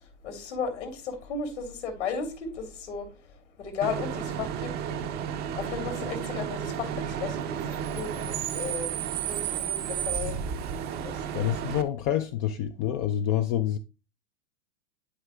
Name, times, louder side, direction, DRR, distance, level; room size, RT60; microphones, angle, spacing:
voice 1, 0.2-3.1 3.6-4.7 5.6-8.9 9.2-10.3 11.0-11.4, left 5 dB, 75° left, 2.9 m, -35 dB
Bus / Idling / Screech, 3.8-11.8, right 9 dB, 25° right, 0.6 m, -32 dB
voice 2, 11.3-13.8, left 10 dB, 30° left, 0.4 m, -27 dB
11.5 x 4.7 x 2.3 m
hypercardioid pair, 110°, 36 cm